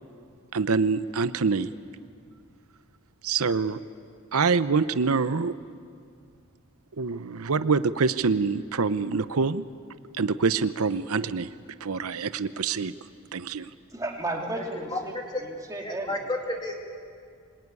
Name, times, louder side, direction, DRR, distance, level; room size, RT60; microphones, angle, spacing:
voice 1, 0.5-1.7 3.2-3.8 4.3-5.5 7.0-9.6 10.1-11.5 11.8-12.9 13.3-13.7, right 4 dB, 75° right, 13 dB, 0.7 m, -25 dB
voice 2, 13.9-16.2, right 1 dB, 15° right, 0 dB, 3.0 m, -34 dB
voice 3, 14.9-15.4 15.8-16.7, left 2 dB, 20° left, 1 dB, 2.5 m, -31 dB
26.0 x 20.5 x 9.7 m, 2.3 s
head